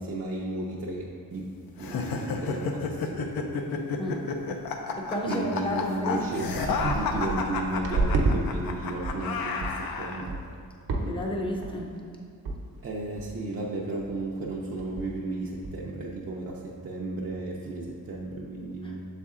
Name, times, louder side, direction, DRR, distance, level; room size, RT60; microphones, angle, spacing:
voice 1, 0.0-1.5 1.8-3.3 5.3-10.4 12.8-19.0, right 2 dB, 40° right, -4 dB, 0.5 m, -34 dB
sound 1, 1.8-10.3, left 4 dB, 75° left, 0.6 m, -31 dB
sound 2, 3.5-3.7 4.0-4.3 4.9-5.0 5.7-5.8 6.0-8.4 8.7-9.2 9.6-9.8 10.3-10.6 10.9-11.3 11.6-12.0 12.5-12.6 12.8-12.9 13.2-13.6 14.0-14.2 14.5-14.6 14.8-15.2 15.6-15.7, right 3 dB, 80° right, 0.9 m, -30 dB
voice 2, 5.0-6.5 11.0-11.9 18.8-19.0, left 1 dB, 15° left, 0 dB, 0.6 m, -32 dB
7.0 x 4.2 x 3.6 m, 2.3 s
wide cardioid pair, 170°, 36 cm